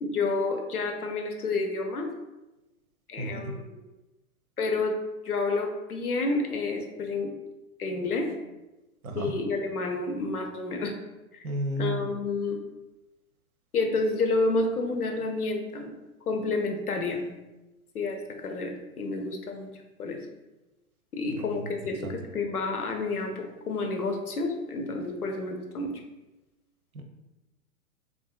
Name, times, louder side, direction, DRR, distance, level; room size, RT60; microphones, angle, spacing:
voice 1, 0.0-2.1 3.1-3.8 4.6-4.9 5.2-7.3 7.8-8.3 9.1-10.9 11.3-11.5 11.8-12.6 13.7-15.9 16.3-17.2 17.9-19.7 20.0-20.2 21.1-25.9, left 3 dB, 80° left, 3 dB, 0.6 m, -29 dB
voice 2, 3.2-3.5 9.0-9.3 11.4-12.1 21.4-21.6 22.0-22.1 26.9-27.0, right 1 dB, 75° right, 4 dB, 0.6 m, -32 dB
3.3 x 2.5 x 2.3 m, 1.0 s
figure-of-eight pair, 105°, 44 cm